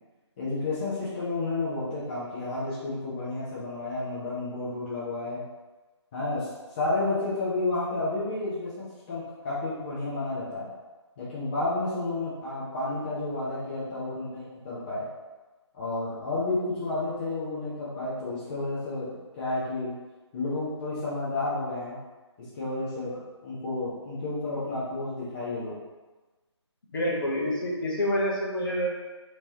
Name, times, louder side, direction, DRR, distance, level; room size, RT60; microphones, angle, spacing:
voice 1, 0.4-5.4 6.1-6.5 6.8-10.7 11.2-15.1 15.7-19.9 20.3-22.0 22.5-25.7, left 2 dB, 20° left, -10 dB, 0.6 m, -31 dB
voice 2, 26.9-28.9, equal, 45° left, -4 dB, 0.8 m, -27 dB
4.4 x 2.9 x 2.8 m, 1.2 s
figure-of-eight pair, 155°, 15 cm